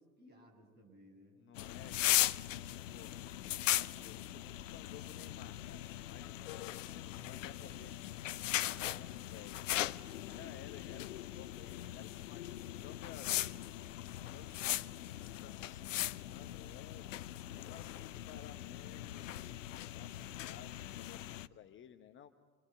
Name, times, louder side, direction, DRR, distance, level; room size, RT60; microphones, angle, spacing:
voice 1, 0.0-1.4 7.2-8.0 9.9-10.3, equal, 25° right, 3 dB, 7.2 m, -61 dB
voice 2, 1.4-3.2 3.5-8.0 8.4-9.6 10.3-13.3 14.2-17.0 17.5-22.3, left 9 dB, 25° left, 8 dB, 1.1 m, -56 dB
sound 1, 1.6-21.5, left 13 dB, 60° left, 0.7 m, -39 dB
28.5 x 22.5 x 8.3 m, 1.4 s
figure-of-eight pair, 85°, 43 cm